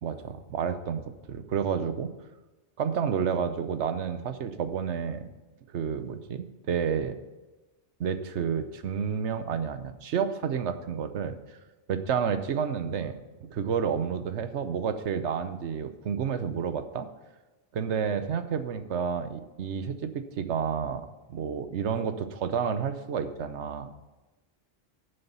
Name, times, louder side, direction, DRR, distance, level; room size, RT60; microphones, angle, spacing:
voice 1, 0.0-2.1 2.8-5.3 5.7-7.2 8.0-11.6 11.9-13.2 13.5-17.1 17.7-23.9, right 7 dB, 70° right, 10 dB, 1.0 m, -30 dB
11.5 x 6.7 x 5.6 m, 1.1 s
omnidirectional pair, 1.2 m